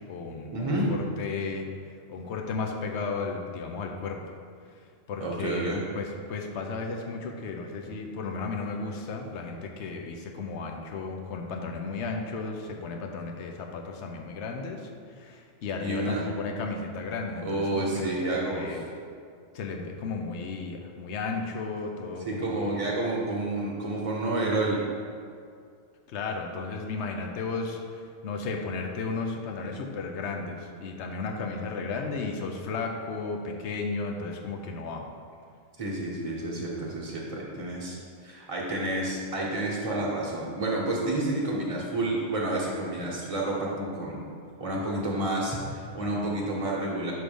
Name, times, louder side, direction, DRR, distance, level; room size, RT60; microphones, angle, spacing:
voice 1, 0.0-1.7 2.1-4.2 5.1-18.8 19.5-22.8 26.1-35.0, left 4 dB, 75° left, 2 dB, 0.9 m, -34 dB
voice 2, 0.5-0.9 5.2-5.8 15.8-16.3 17.4-18.8 22.2-24.8 35.8-44.2 44.6-47.1, right 2 dB, 30° right, -4 dB, 1.1 m, -29 dB
6.1 x 3.2 x 5.2 m, 2.2 s
omnidirectional pair, 1.2 m